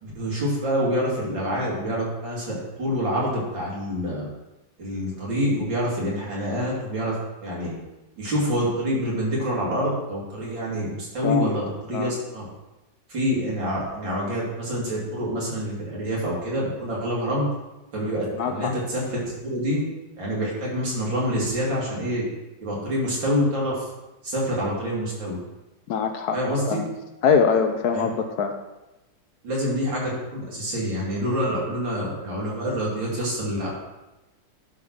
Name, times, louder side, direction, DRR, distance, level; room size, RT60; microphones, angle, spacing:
voice 1, 0.0-4.3 4.8-7.2 7.4-7.8 8.2-12.5 13.1-17.5 17.9-19.9 20.2-22.3 22.6-23.9 24.2-25.4 26.3-26.8 27.9-28.1 29.4-33.8, equal, 80° right, -5 dB, 3.5 m, -26 dB
voice 2, 18.4-18.7 25.9-26.4 26.7-26.9 27.2-28.5, left 6 dB, 65° left, 6 dB, 1.1 m, -23 dB
11.0 x 4.0 x 6.2 m, 1.0 s
omnidirectional pair, 2.0 m